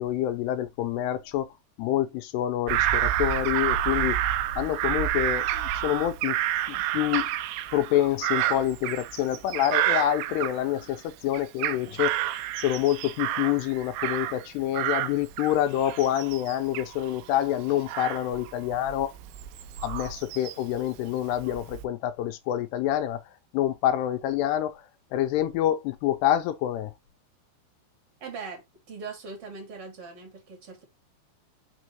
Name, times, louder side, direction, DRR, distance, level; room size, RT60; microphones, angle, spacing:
voice 1, 0.0-1.5 1.8-4.2 4.6-6.4 6.7-7.3 7.7-12.2 12.6-19.2 19.8-23.2 23.5-24.8 25.1-26.9, left 12 dB, 80° left, 2.5 m, -27 dB
Bird vocalization bird call bird song / Crow, 2.7-11.0 11.3-14.5 14.7-20.8 21.3-21.9, right 12 dB, 85° right, 2.7 m, -29 dB
voice 2, 28.2-30.8, right 4 dB, 35° right, 3.1 m, -40 dB
6.3 x 6.2 x 3.0 m
omnidirectional pair, 5.2 m